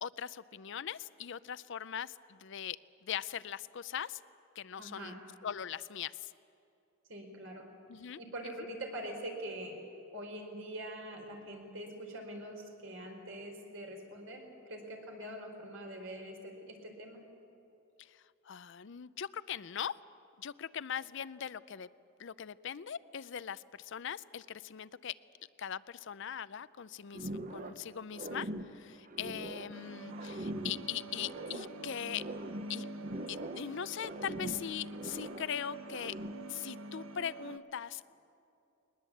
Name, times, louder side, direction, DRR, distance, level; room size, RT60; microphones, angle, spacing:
voice 1, 0.0-4.2 4.6-5.1 5.4-6.3 7.9-8.2 18.0-20.0 20.4-21.9 22.2-25.1 25.6-32.2 32.7-32.8 33.3-36.2 36.5-38.1, left 9 dB, 60° left, 16 dB, 0.5 m, -40 dB
voice 2, 4.8-5.2 7.1-7.7 8.2-9.8 10.1-17.2, right 1 dB, 65° right, 2 dB, 4.1 m, -44 dB
sound 1, 27.1-27.9 28.1-29.8 30.1-31.8 32.1-33.7 34.0-35.5 35.9-36.5, right 1 dB, 40° right, 1.1 m, -42 dB
sound 2, 29.7-37.6, right 2 dB, 85° right, 1.1 m, -46 dB
21.0 x 20.0 x 8.5 m, 2.7 s
head